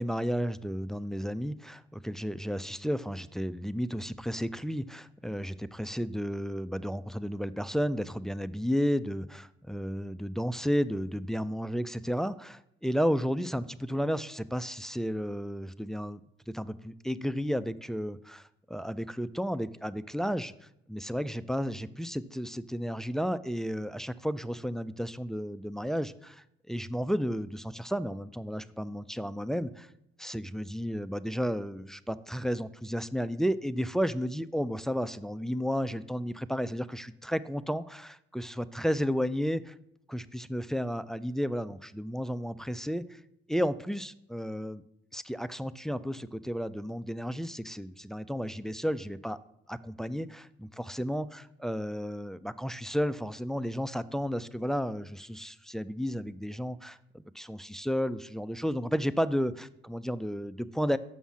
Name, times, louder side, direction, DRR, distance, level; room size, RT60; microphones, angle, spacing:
voice 1, 0.0-16.2 16.5-29.9 30.2-39.7 40.1-43.2 43.5-44.8 45.1-49.4 49.7-61.0, equal, ahead, 15 dB, 0.3 m, -32 dB
6.4 x 5.6 x 7.2 m, 0.79 s
cardioid pair, 90°, 20 cm